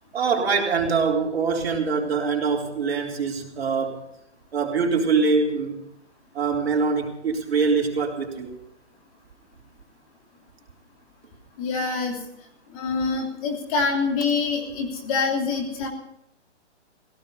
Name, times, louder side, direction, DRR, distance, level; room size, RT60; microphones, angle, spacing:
voice 1, 0.1-4.0 4.5-5.8 6.3-8.6, right 5 dB, 55° right, 0 dB, 4.2 m, -24 dB
voice 2, 11.6-12.2 12.7-15.9, left 4 dB, 30° left, 3 dB, 3.2 m, -25 dB
17.0 x 15.5 x 5.4 m, 0.78 s
hypercardioid pair, 160°, 36 cm